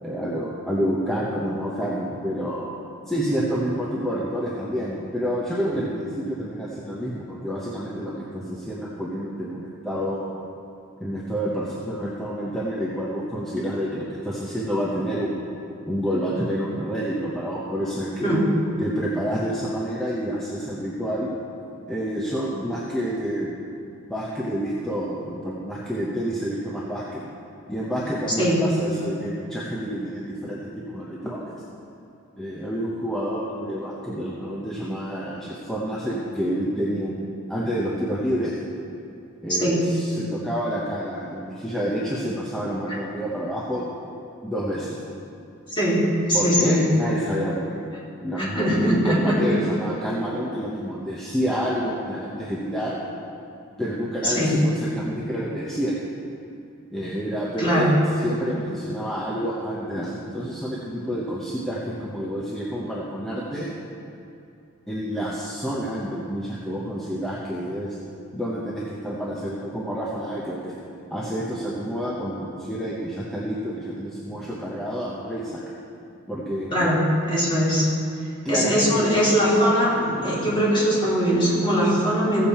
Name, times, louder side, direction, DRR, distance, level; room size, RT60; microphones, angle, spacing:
voice 1, 0.0-2.7 3.1-10.3 11.0-15.4 15.9-18.3 18.8-21.3 21.9-23.6 24.1-27.3 27.7-31.6 32.4-38.6 39.4-43.8 44.4-45.0 46.3-47.8 48.2-53.0 53.8-55.9 56.9-57.9 58.2-63.7 64.9-68.0 68.3-70.7 71.1-75.6 76.3-76.9 78.4-79.1, equal, ahead, -6 dB, 0.9 m, -28 dB
voice 2, 45.7-46.0 46.3-46.8 48.4-49.6 54.2-54.6 57.6-57.9 76.7-77.0 77.3-77.9 78.5-82.5, equal, 25° left, -8 dB, 3.0 m, -21 dB
15.5 x 7.2 x 4.4 m, 2.6 s
head